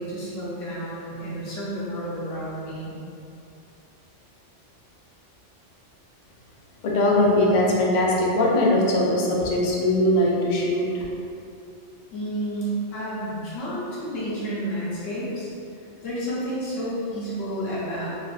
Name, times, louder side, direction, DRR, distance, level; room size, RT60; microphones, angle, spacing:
voice 1, 0.0-2.9 12.1-15.5 16.0-18.1, right 1 dB, 85° left, -8 dB, 1.2 m, -30 dB
voice 2, 6.8-11.0, left 1 dB, 60° left, -3 dB, 0.5 m, -21 dB
3.4 x 2.4 x 2.2 m, 2.6 s
omnidirectional pair, 1.3 m